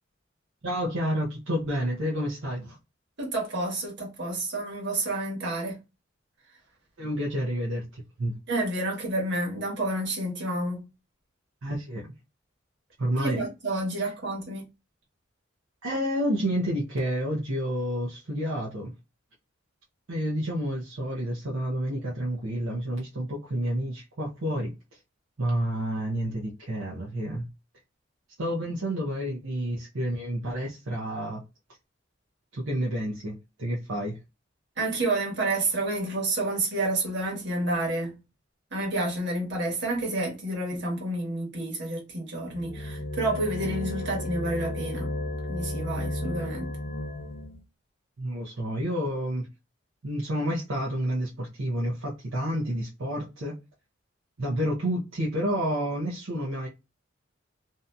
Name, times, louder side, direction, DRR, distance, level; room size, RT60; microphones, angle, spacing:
voice 1, 0.6-2.8 7.0-8.3 11.6-12.1 13.0-13.4 14.0-14.1 15.8-18.9 20.1-25.0 25.4-27.5 28.4-31.4 32.5-34.2 48.2-49.5 50.0-53.6 54.4-56.7, equal, 75° right, 0.7 m, -29 dB
voice 2, 3.2-5.8 8.5-10.9 13.2-14.6 34.8-38.2 38.7-45.1 45.5-46.8, right 2 dB, 60° right, 1.3 m, -29 dB
sound 1, 42.5-47.6, left 1 dB, 30° left, 0.4 m, -33 dB
2.7 x 2.5 x 2.2 m
head